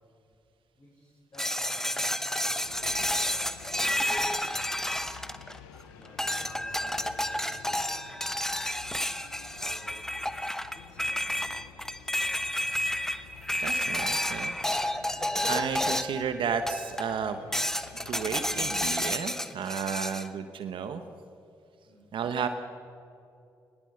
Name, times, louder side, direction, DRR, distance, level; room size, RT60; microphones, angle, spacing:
voice 1, 0.7-2.1 2.4-3.8 5.9-8.0 9.3-10.2 10.7-12.1 21.8-22.1, left 1 dB, 35° left, -2 dB, 5.2 m, -53 dB
sound 1, 1.4-5.8 6.2-16.3 16.7-17.2 17.5-20.3, left 1 dB, 5° left, 1.2 m, -30 dB
sound 2, 2.6-19.0, left 9 dB, 80° left, 0.9 m, -51 dB
voice 2, 13.6-14.5 14.8-17.4 17.9-21.0 22.1-22.5, right 6 dB, 60° right, 9 dB, 1.1 m, -33 dB
20.5 x 19.5 x 6.6 m, 2.6 s
hypercardioid pair, 40°, 10 cm